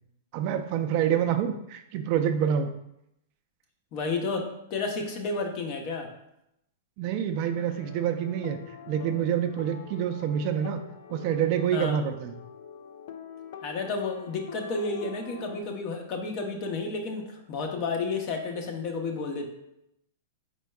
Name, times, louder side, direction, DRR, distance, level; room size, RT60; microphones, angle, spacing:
voice 1, 0.3-2.7 7.0-10.8 11.1-12.3, right 9 dB, 50° right, 7 dB, 0.4 m, -27 dB
voice 2, 3.9-6.1 11.7-12.0 13.6-19.5, left 3 dB, 45° left, 3 dB, 0.8 m, -31 dB
sound 1, 7.5-15.6, left 7 dB, 65° left, 0.4 m, -45 dB
4.4 x 4.3 x 2.3 m, 0.81 s
hypercardioid pair, 125°, 0 cm